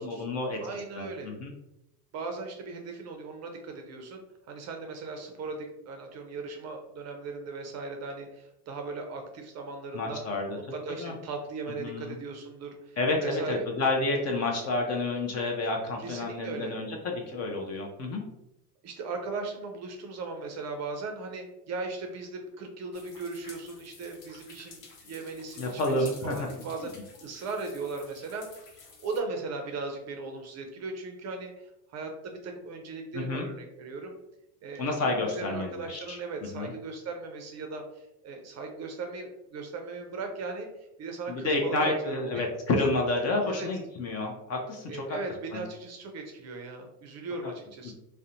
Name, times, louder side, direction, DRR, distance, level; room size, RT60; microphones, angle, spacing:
voice 1, 0.0-0.6 1.0-1.5 9.9-10.6 11.0-11.1 11.8-12.2 13.0-18.2 25.6-26.5 33.1-33.5 34.8-36.2 36.5-36.7 41.3-45.2 45.5-45.6, left 2 dB, 35° left, 2 dB, 0.4 m, -30 dB
voice 2, 0.6-1.3 2.1-10.2 10.7-13.7 16.0-16.8 18.8-28.5 29.0-34.2 34.6-42.5 43.4-43.7 44.9-47.9, right 3 dB, 35° right, 4 dB, 0.4 m, -38 dB
sound 1, 22.9-29.2, left 4 dB, 80° left, 0.8 m, -51 dB
2.4 x 2.1 x 2.7 m, 0.85 s
supercardioid pair, 100°, 47 cm